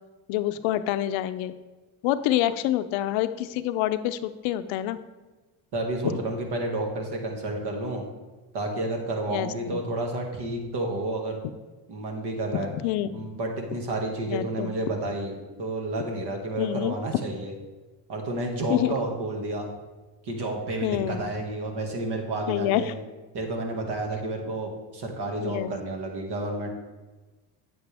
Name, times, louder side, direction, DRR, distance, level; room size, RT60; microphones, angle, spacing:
voice 1, 0.3-1.5 2.0-5.0 6.0-6.2 9.3-9.8 12.7-13.3 14.3-14.7 16.6-16.9 18.7-18.9 20.8-21.3 22.5-22.9 25.4-25.7, left 13 dB, 80° left, 12 dB, 0.6 m, -27 dB
voice 2, 5.7-8.0 8.5-11.4 11.9-12.7 13.1-15.3 15.6-17.5 18.1-19.7 20.3-22.9 23.3-26.7, right 2 dB, 55° right, 2 dB, 2.1 m, -30 dB
8.8 x 8.0 x 3.5 m, 1.2 s
supercardioid pair, 95°, 47 cm